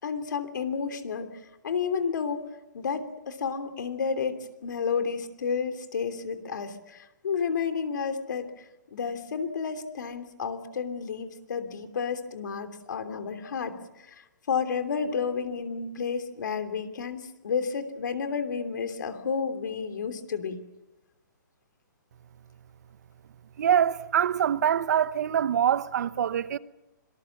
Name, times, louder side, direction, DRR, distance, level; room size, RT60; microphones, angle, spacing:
voice 1, 0.0-1.3 1.6-2.4 2.7-8.6 8.9-13.8 14.1-20.6, left 6 dB, 70° left, 3.1 m, -31 dB
voice 2, 23.6-26.6, right 9 dB, 60° right, 0.9 m, -24 dB
26.0 x 19.5 x 7.3 m
hypercardioid pair, 160°, 10 cm